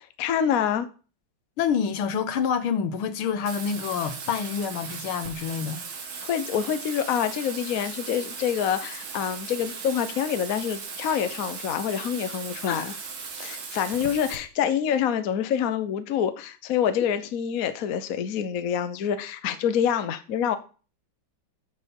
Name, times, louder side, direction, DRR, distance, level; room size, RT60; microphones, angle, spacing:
voice 1, 0.2-0.9 6.2-12.9 13.4-20.6, left 8 dB, 55° left, 1.1 m, -26 dB
voice 2, 1.6-5.8 12.7-13.0, left 7 dB, 80° left, 1.8 m, -27 dB
Bathtub (filling or washing), 3.4-14.3, right 5 dB, 70° right, 2.4 m, -38 dB
9.5 x 6.9 x 5.3 m
omnidirectional pair, 2.3 m